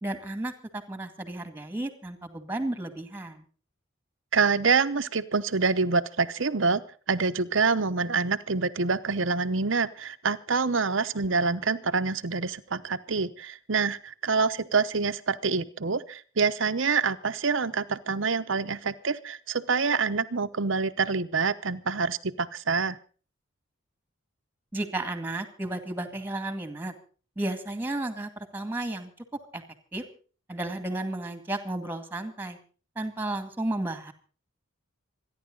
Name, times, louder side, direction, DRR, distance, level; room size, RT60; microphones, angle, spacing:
voice 1, 0.0-3.4 24.7-26.9 27.4-29.1 29.5-29.6 29.9-30.0 30.5-32.6 33.0-34.1, right 2 dB, 10° right, 8 dB, 2.1 m, -33 dB
voice 2, 4.3-6.8 7.1-23.0, right 4 dB, 65° right, 10 dB, 0.9 m, -26 dB
26.5 x 10.5 x 3.9 m, 0.39 s
head